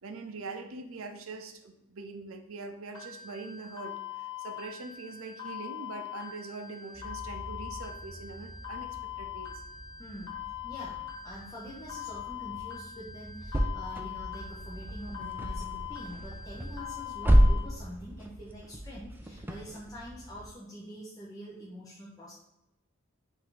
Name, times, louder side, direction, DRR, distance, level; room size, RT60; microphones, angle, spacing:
voice 1, 0.0-9.6, right 3 dB, 80° right, 5 dB, 0.6 m, -43 dB
sound 1, 3.0-17.6, left 10 dB, 90° left, 1.1 m, -42 dB
sound 2, 6.9-20.5, equal, 10° right, 0.3 m, -32 dB
voice 2, 10.0-10.3 10.6-22.3, equal, 15° left, -8 dB, 0.7 m, -45 dB
4.7 x 2.7 x 3.8 m, 0.88 s
head